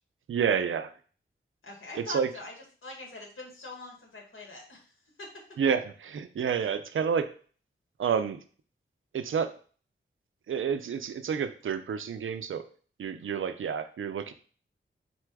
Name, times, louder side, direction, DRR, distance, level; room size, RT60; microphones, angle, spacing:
voice 1, 0.3-0.9 2.0-2.3 5.6-7.3 8.0-8.4 9.1-9.5 10.5-12.6 13.0-14.3, right 7 dB, 75° right, 10 dB, 0.5 m, -29 dB
voice 2, 1.6-2.5 2.8-5.4, left 3 dB, 85° left, -1 dB, 1.4 m, -43 dB
4.2 x 2.2 x 4.6 m, 0.41 s
wide cardioid pair, 110°, 21 cm